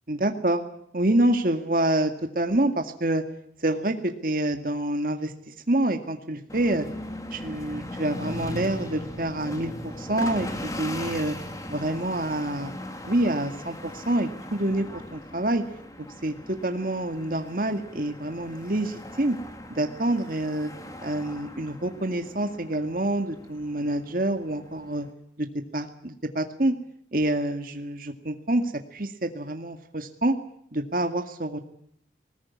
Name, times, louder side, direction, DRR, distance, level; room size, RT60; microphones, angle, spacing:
voice 1, 0.1-0.6 0.9-3.2 3.6-6.9 7.3-11.4 11.7-12.7 13.0-14.9 15.1-15.6 16.2-19.3 19.7-20.7 21.0-25.1 25.4-25.5 25.7-26.7 27.1-28.6 28.9-30.4 30.7-31.6, right 1 dB, 50° right, 5 dB, 2.0 m, -27 dB
sound 1, 6.5-25.1, left 1 dB, 20° left, 2.7 m, -39 dB
20.5 x 20.0 x 9.7 m, 0.68 s
head